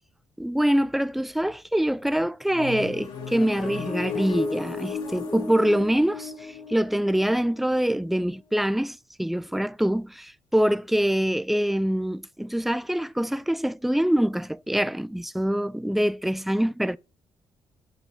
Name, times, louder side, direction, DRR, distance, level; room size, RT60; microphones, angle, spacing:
voice 1, 0.4-17.0, equal, ahead, 0.4 m, -25 dB
sound 1, 2.5-8.2, left 5 dB, 80° left, 3.5 m, -34 dB
6.9 x 5.7 x 7.1 m
cardioid pair, 85°, 9 cm